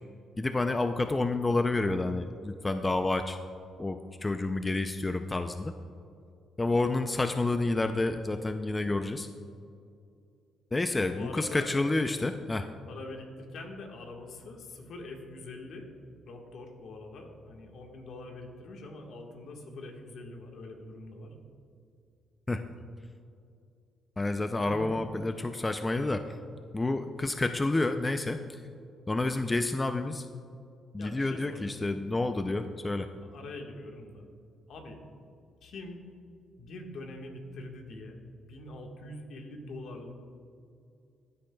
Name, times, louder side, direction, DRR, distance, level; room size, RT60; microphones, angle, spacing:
voice 1, 0.4-3.4 3.8-5.7 6.6-9.3 10.7-12.7 22.5-22.6 24.2-26.3 26.7-28.6 29.1-30.3 30.9-33.1, left 2 dB, 20° left, 8 dB, 0.4 m, -29 dB
voice 2, 10.9-11.7 12.9-15.9 16.3-21.3 24.6-24.9 31.0-31.8 33.3-34.3 34.7-35.0 35.6-36.0 36.6-38.2 38.5-40.1, left 2 dB, 70° left, 2 dB, 1.4 m, -44 dB
15.5 x 8.7 x 2.3 m, 2.4 s
cardioid pair, 90°, 0 cm